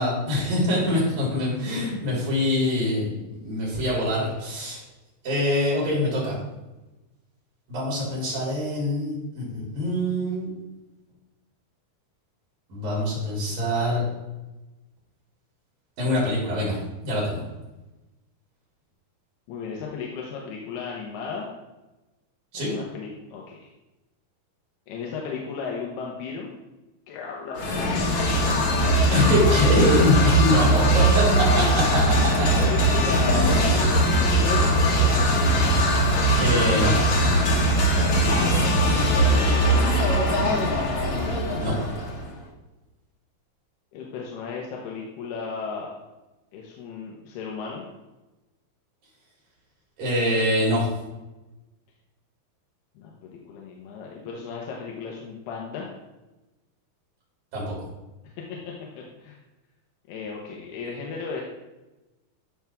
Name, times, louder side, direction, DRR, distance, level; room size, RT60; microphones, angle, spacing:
voice 1, 0.0-4.8 5.2-6.4 7.7-10.5 12.7-14.0 16.0-16.8 17.0-17.4 22.5-22.7 29.1-32.5 33.3-33.6 36.4-37.4 41.6-41.8 50.0-50.9 57.5-57.9, left 1 dB, 60° right, -4 dB, 5.1 m, -24 dB
voice 2, 19.5-21.5 22.5-23.7 24.9-26.5 27.1-28.1 30.5-30.8 32.3-34.9 38.4-40.1 43.9-45.9 46.5-47.8 53.0-55.9 58.2-58.3 59.0-59.4 60.1-61.4, left 5 dB, 85° left, -2 dB, 3.2 m, -35 dB
sound 1, 27.5-42.2, right 1 dB, 50° left, 1.6 m, -20 dB
15.0 x 6.0 x 3.6 m, 1.1 s
omnidirectional pair, 4.5 m